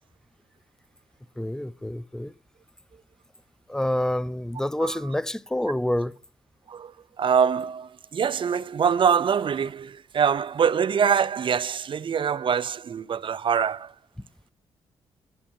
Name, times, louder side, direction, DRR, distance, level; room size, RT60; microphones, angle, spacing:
voice 1, 1.4-2.3 3.7-6.1, left 1 dB, 5° left, 0.6 m, -27 dB
voice 2, 7.2-13.9, right 7 dB, 50° right, 0.6 m, -24 dB
11.5 x 8.3 x 5.3 m
cardioid pair, 65°, 11 cm